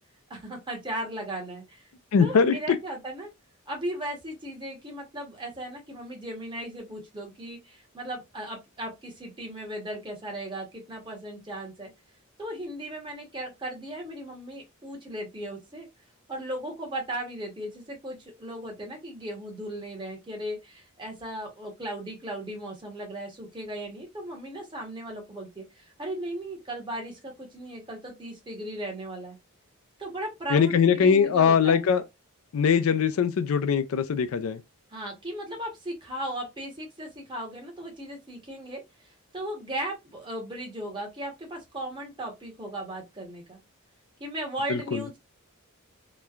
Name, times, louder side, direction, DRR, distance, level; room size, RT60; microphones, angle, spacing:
voice 1, 0.3-1.8 2.2-3.3 3.7-11.9 12.4-15.9 16.3-29.4 30.0-31.9 34.9-38.8 39.3-43.6 44.2-45.2, right 1 dB, 20° right, 0.9 m, -37 dB
voice 2, 2.1-2.8 30.5-32.0 32.5-34.6 44.7-45.0, left 6 dB, 70° left, 0.4 m, -22 dB
3.0 x 2.2 x 2.4 m
head